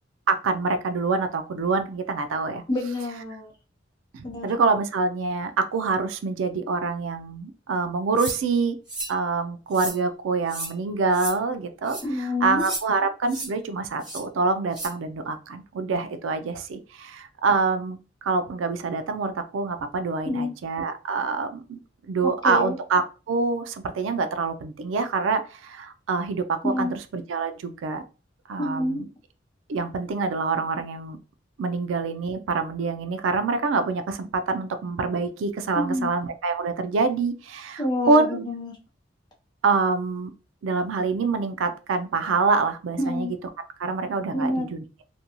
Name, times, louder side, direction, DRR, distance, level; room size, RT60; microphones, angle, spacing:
voice 1, 0.3-2.6 4.1-8.8 9.1-21.8 22.1-28.0 28.5-29.0 29.7-31.2 31.6-38.4 39.6-40.3 40.6-43.4 43.8-44.8, right 4 dB, 90° right, 9 dB, 0.4 m, -26 dB
voice 2, 2.7-3.5 4.2-4.5 12.0-12.6 20.3-20.5 22.2-22.8 26.6-27.0 28.6-29.0 35.8-36.1 37.8-38.8 43.0-43.3 44.3-44.7, left 1 dB, 25° left, -1 dB, 0.7 m, -27 dB
sound 1, 8.2-8.4 8.9-9.1 9.7-10.0 10.5-10.7 11.1-11.3 11.8-12.0 12.6-12.8 13.3-13.5 14.0-14.2 14.7-14.9, right 2 dB, 25° right, 1.0 m, -33 dB
2.5 x 2.2 x 2.9 m, 0.34 s
head